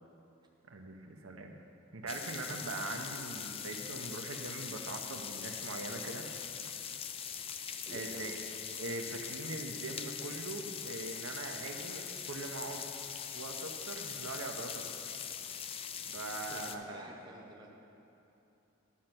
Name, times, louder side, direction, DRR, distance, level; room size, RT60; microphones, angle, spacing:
voice 1, 0.7-1.5 1.9-6.3 7.9-8.4 8.8-12.9 13.3-15.2 16.1-17.0, right 2 dB, 85° right, 3 dB, 0.8 m, -42 dB
sound 1, 2.1-16.8, left 8 dB, 25° left, 0.3 m, -42 dB
voice 2, 7.9-8.3 16.5-17.8, right 1 dB, 20° right, 0 dB, 0.8 m, -48 dB
10.0 x 6.5 x 6.0 m, 2.9 s
head